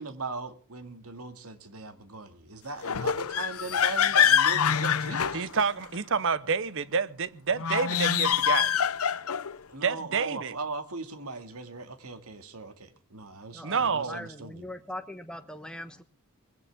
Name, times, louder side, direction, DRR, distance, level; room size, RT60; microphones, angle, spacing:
voice 1, 0.0-5.5 9.7-14.7, right 3 dB, 85° right, 2.1 m, -39 dB
sound 1, 2.8-6.0 7.6-9.6, left 8 dB, 75° left, 0.7 m, -25 dB
voice 2, 5.3-8.7 9.8-10.5 13.6-14.2, right 5 dB, 60° right, 0.8 m, -28 dB
voice 3, 13.5-16.0, left 1 dB, 5° left, 1.0 m, -41 dB
21.0 x 17.0 x 3.6 m
head